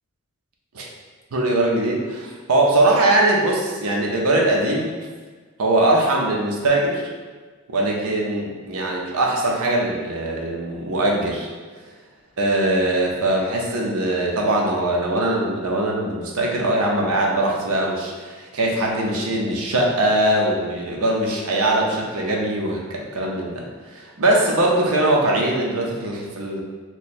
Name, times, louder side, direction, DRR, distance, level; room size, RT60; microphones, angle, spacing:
voice 1, 1.3-4.9 5.6-7.0 7.7-11.5 12.4-23.6 23.9-26.6, right 1 dB, 85° right, -1 dB, 0.6 m, -21 dB
3.0 x 2.2 x 4.2 m, 1.4 s
head